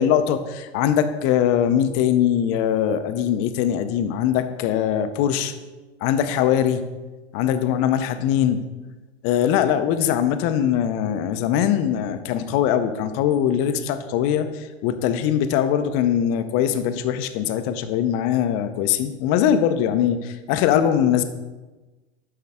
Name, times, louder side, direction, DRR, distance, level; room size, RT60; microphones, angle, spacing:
voice 1, 0.0-5.5 6.0-6.8 7.3-8.6 9.2-21.2, left 9 dB, 45° left, 10 dB, 0.6 m, -21 dB
7.9 x 5.5 x 3.6 m, 1.2 s
hypercardioid pair, 100°, 33 cm